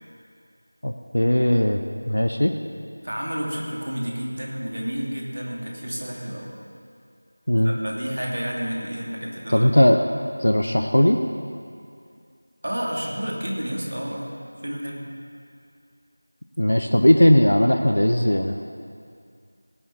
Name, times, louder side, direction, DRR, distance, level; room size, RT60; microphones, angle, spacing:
voice 1, 0.8-1.8 2.1-2.6 7.5-7.8 9.5-10.0 10.4-11.2 16.6-18.5, equal, 65° left, 4 dB, 0.8 m, -18 dB
voice 2, 3.0-6.5 7.6-9.7 12.6-14.3 14.6-15.1, equal, 55° right, -2 dB, 2.7 m, -30 dB
18.5 x 7.3 x 7.3 m, 2.4 s
figure-of-eight pair, 175°, 0 cm